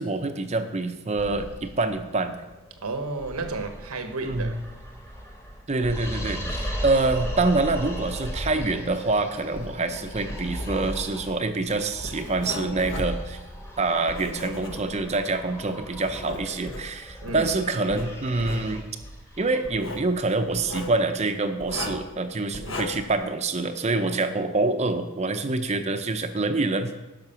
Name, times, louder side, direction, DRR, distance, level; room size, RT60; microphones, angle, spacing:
voice 1, 0.0-2.4 4.2-4.5 5.7-13.4 13.8-18.9 19.4-26.9, right 3 dB, 30° right, 8 dB, 0.6 m, -26 dB
sound 1, 1.2-20.8, equal, 10° left, 1.2 m, -37 dB
voice 2, 2.8-4.6 17.2-17.5 22.6-22.8, right 3 dB, 80° right, 6 dB, 1.1 m, -32 dB
Writing, 9.6-15.2 15.7-17.5 17.9-18.7 19.6-20.1 20.5-21.0 21.6-22.1 22.5-23.1, left 1 dB, 60° left, 1.2 m, -37 dB
10.5 x 5.9 x 5.7 m, 1.0 s
head